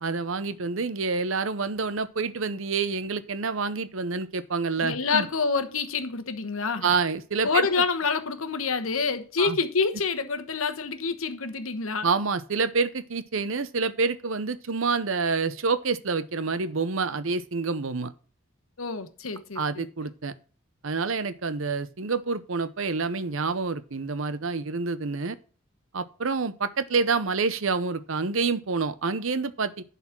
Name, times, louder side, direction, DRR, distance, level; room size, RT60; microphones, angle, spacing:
voice 1, 0.0-5.3 6.8-7.6 9.4-9.6 12.0-18.1 19.6-20.3 20.8-25.4 25.9-29.8, right 4 dB, 70° right, 0.8 m, -27 dB
voice 2, 4.8-6.9 7.4-12.1 18.8-19.9, left 4 dB, 75° left, 1.1 m, -27 dB
11.0 x 4.3 x 5.9 m
head